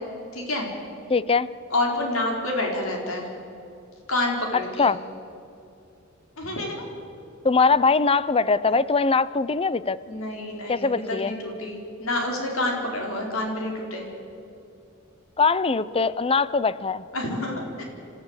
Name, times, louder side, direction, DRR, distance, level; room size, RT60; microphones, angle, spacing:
voice 1, 0.3-0.7 1.7-3.3 4.1-4.9 6.4-6.9 10.1-14.0 17.1-17.8, left 1 dB, 80° left, 1 dB, 4.3 m, -28 dB
voice 2, 1.1-1.5 4.8-5.0 7.4-10.0 10.7-11.3 15.4-17.0, left 4 dB, 25° left, 17 dB, 0.6 m, -21 dB
27.5 x 15.5 x 8.1 m, 2.6 s
head